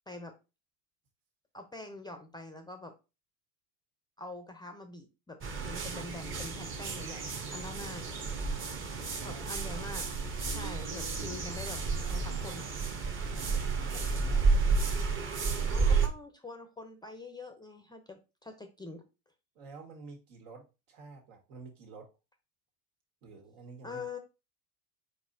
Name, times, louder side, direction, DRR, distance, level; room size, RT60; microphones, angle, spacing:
voice 1, 0.1-0.4 1.5-3.0 4.2-8.1 9.2-10.1 10.4-12.7 15.7-19.0 23.8-24.2, left 2 dB, 10° left, 0.5 m, -45 dB
sound 1, 5.4-16.1, right 4 dB, 25° right, 0.9 m, -31 dB
voice 2, 8.9-9.4 13.3-14.5 19.6-22.1 23.2-24.0, right 4 dB, 70° right, 1.7 m, -49 dB
4.6 x 4.2 x 2.7 m
hypercardioid pair, 90°, 47 cm